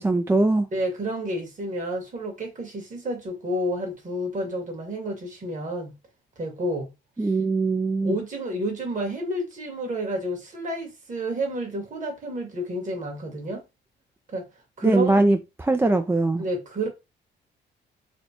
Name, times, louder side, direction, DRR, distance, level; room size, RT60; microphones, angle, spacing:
voice 1, 0.0-0.7 7.2-8.2 14.8-16.4, right 2 dB, 10° right, 0.3 m, -21 dB
voice 2, 0.7-5.9 6.4-6.9 8.0-13.6 14.3-14.5 14.8-15.2 16.4-16.9, right 1 dB, 40° right, 1.7 m, -30 dB
4.2 x 2.2 x 2.9 m
cardioid pair, 90°, 20 cm